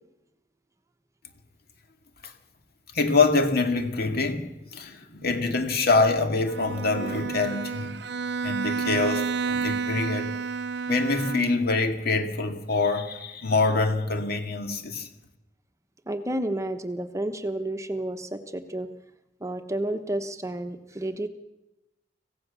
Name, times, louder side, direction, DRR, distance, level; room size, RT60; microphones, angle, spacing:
voice 1, 2.9-8.0 8.4-10.3 10.9-15.1, left 3 dB, 55° left, 2.4 m, -25 dB
Bowed string instrument, 6.5-11.8, right 5 dB, 65° right, 0.7 m, -30 dB
voice 2, 16.1-18.9 19.4-21.3, right 1 dB, 15° right, 1.1 m, -31 dB
26.0 x 16.0 x 7.0 m
head